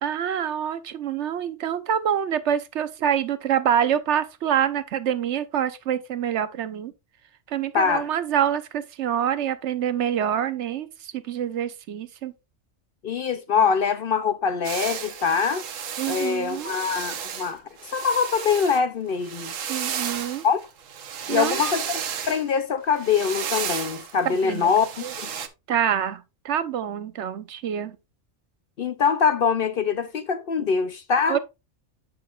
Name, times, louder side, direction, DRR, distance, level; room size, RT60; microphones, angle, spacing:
voice 1, 0.0-6.9 7.5-12.3 16.0-16.8 19.7-20.4 21.3-21.6 24.3-24.6 25.0-25.1 25.7-28.0 31.3-31.4, right 9 dB, 70° right, 1.0 m, -26 dB
voice 2, 7.7-8.1 13.0-15.6 16.1-19.5 20.4-20.6 21.3-25.0 28.8-31.4, left 6 dB, 55° left, 0.7 m, -23 dB
sound 1, 14.6-18.8 19.1-22.4 22.9-25.5, right 8 dB, 90° right, 1.3 m, -33 dB
8.7 x 6.2 x 2.4 m
omnidirectional pair, 1.3 m